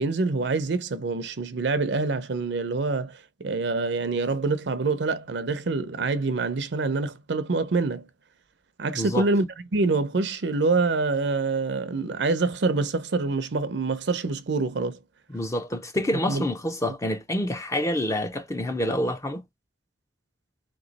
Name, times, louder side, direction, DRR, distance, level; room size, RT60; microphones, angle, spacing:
voice 1, 0.0-8.1 8.8-9.5 9.7-15.0 16.3-16.4, right 3 dB, 70° right, 0.6 m, -26 dB
voice 2, 8.9-9.3 15.3-19.4, left 1 dB, 15° left, 0.5 m, -27 dB
3.2 x 3.0 x 4.0 m
head